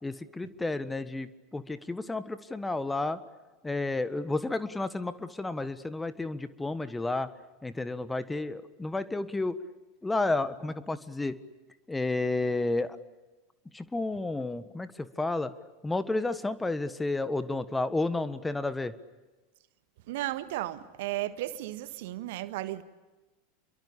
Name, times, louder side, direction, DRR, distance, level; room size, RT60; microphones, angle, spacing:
voice 1, 0.0-3.2 3.6-7.3 7.6-9.6 10.0-11.4 11.9-13.0 13.7-15.5 15.8-18.9, left 2 dB, 10° left, 1.4 m, -31 dB
voice 2, 20.1-22.8, right 15 dB, 60° right, 1.5 m, -34 dB
28.0 x 23.5 x 8.6 m
figure-of-eight pair, 85°, 0 cm